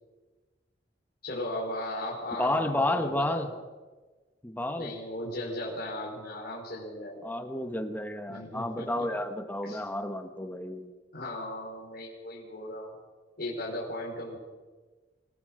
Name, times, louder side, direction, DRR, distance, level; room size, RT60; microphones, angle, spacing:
voice 1, 1.2-3.5 4.7-7.3 8.3-9.1 9.6-9.8 11.1-12.9 13.4-14.4, left 1 dB, 55° left, -4 dB, 4.8 m, -37 dB
voice 2, 2.4-3.5 4.4-4.9 7.2-10.9, left 1 dB, 10° left, 7 dB, 1.3 m, -31 dB
25.0 x 16.5 x 6.3 m, 1.3 s
head